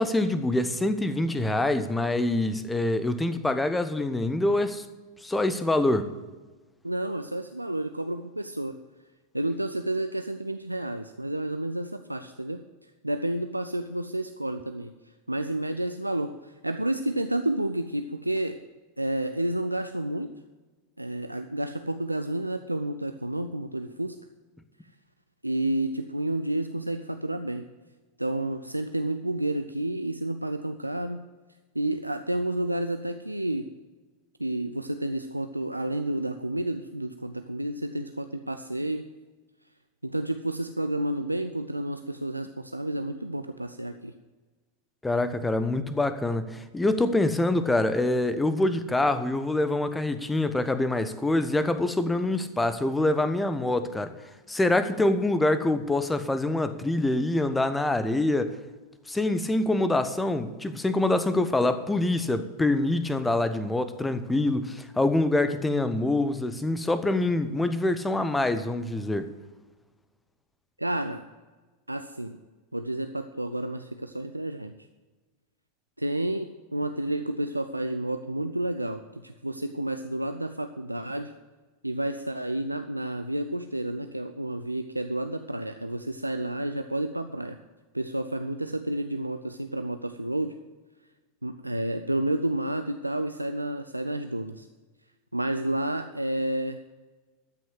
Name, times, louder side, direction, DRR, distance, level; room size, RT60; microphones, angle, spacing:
voice 1, 0.0-4.8 5.2-6.1 45.0-54.1 54.5-58.5 59.1-69.3, left 2 dB, 10° left, 12 dB, 0.9 m, -25 dB
voice 2, 6.8-8.8 9.3-12.6 13.0-14.9 15.3-18.6 19.0-20.3 21.0-24.1 25.4-27.6 28.2-31.2 31.7-33.7 34.4-39.1 40.0-44.1 70.8-71.2 71.9-72.4 72.7-74.7 76.0-81.3 81.8-87.6 87.9-90.6 91.4-94.7 95.3-96.8, right 1 dB, 85° right, 8 dB, 0.5 m, -30 dB
13.0 x 6.3 x 7.9 m, 1.3 s
figure-of-eight pair, 90°, 0 cm